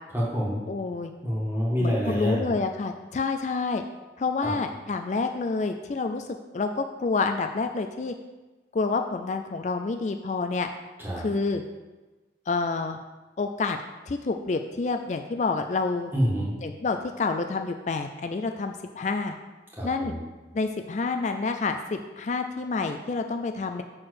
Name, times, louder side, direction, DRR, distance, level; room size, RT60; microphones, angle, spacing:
voice 1, 0.1-0.6 1.2-2.5 4.4-4.5 11.0-11.2 16.1-16.5 19.7-20.2, equal, 10° right, -5 dB, 1.8 m, -27 dB
voice 2, 0.7-1.1 1.8-3.8 4.2-6.3 6.5-8.1 8.7-10.7 11.2-11.6 12.5-13.0 13.4-13.8 14.1-16.1 16.6-19.3 19.8-20.1 20.5-23.8, left 4 dB, 40° left, 6 dB, 0.3 m, -28 dB
6.3 x 4.4 x 6.5 m, 1.2 s
head